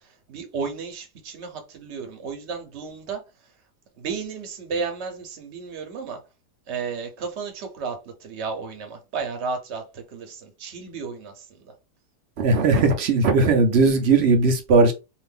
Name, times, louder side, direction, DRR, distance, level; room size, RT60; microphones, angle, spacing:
voice 1, 0.0-3.2 4.0-6.2 6.7-11.7, right 5 dB, 50° right, 0.9 m, -33 dB
voice 2, 12.4-14.9, right 3 dB, 70° right, 0.6 m, -18 dB
2.6 x 2.5 x 3.5 m
omnidirectional pair, 1.8 m